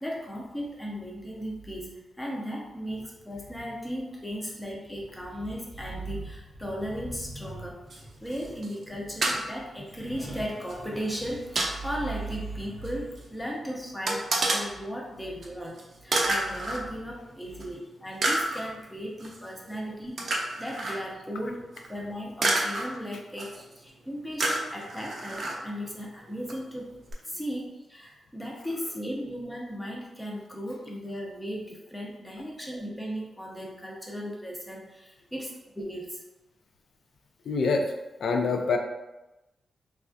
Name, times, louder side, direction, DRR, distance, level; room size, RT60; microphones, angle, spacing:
voice 1, 0.0-26.9 27.3-36.2, equal, 5° left, -2 dB, 0.5 m, -36 dB
sound 1, 7.9-8.0 8.3-8.9 9.2-9.4 10.7-10.8 11.1-11.7 12.8-12.9 13.2-13.3 14.1-14.6 15.4-15.5 15.8-15.9 16.1-16.8 17.6-17.7 18.2-18.6 19.2-19.4 20.2-21.0 21.7-21.9 22.4-22.8 23.4-23.7 24.4-25.6 26.5-26.6 27.1-27.2, right 2 dB, 50° right, 0.5 m, -28 dB
voice 2, 37.4-37.9 38.2-38.8, left 4 dB, 70° left, 3 dB, 0.4 m, -25 dB
3.2 x 2.3 x 2.5 m, 1.0 s
wide cardioid pair, 130°, 0 cm